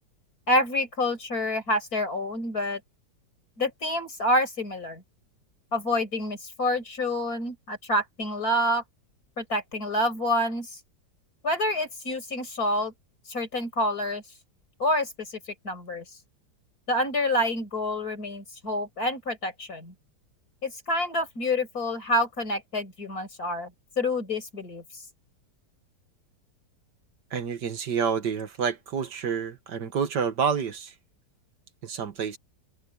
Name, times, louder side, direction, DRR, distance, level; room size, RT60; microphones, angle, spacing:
voice 1, 0.5-2.8 3.6-5.0 5.7-8.8 9.4-10.8 11.4-12.9 13.3-14.2 14.8-15.4 15.6-16.0 16.9-19.9 20.6-23.7 24.0-24.8, left 1 dB, 60° left, 5.9 m, -27 dB
voice 2, 27.3-30.9 31.8-32.4, right 6 dB, 80° right, 2.1 m, -28 dB
open air
omnidirectional pair, 1.8 m